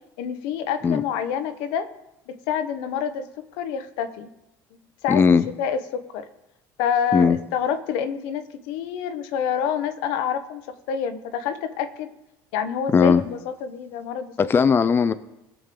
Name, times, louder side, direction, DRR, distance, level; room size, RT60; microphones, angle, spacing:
voice 1, 0.2-1.9 2.3-3.3 3.6-4.3 5.0-5.2 5.6-6.2 6.8-12.1 12.5-14.3, left 7 dB, 80° left, 10 dB, 0.9 m, -27 dB
voice 2, 5.1-5.4 7.1-7.4 12.9-13.2 14.4-15.1, left 5 dB, 25° left, 12 dB, 0.5 m, -18 dB
17.5 x 6.3 x 3.8 m, 0.89 s
supercardioid pair, 105°, 9 cm